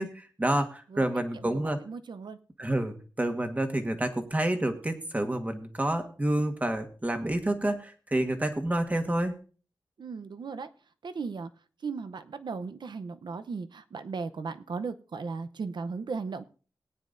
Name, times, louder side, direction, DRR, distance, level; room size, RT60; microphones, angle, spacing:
voice 1, 0.0-1.8 2.6-9.4, right 1 dB, 20° right, 6 dB, 1.4 m, -29 dB
voice 2, 1.4-2.4 10.0-10.7 11.0-11.5 11.8-16.4, right 4 dB, 70° right, 11 dB, 0.7 m, -36 dB
19.0 x 9.6 x 2.6 m, 0.39 s
wide cardioid pair, 135°, 8 cm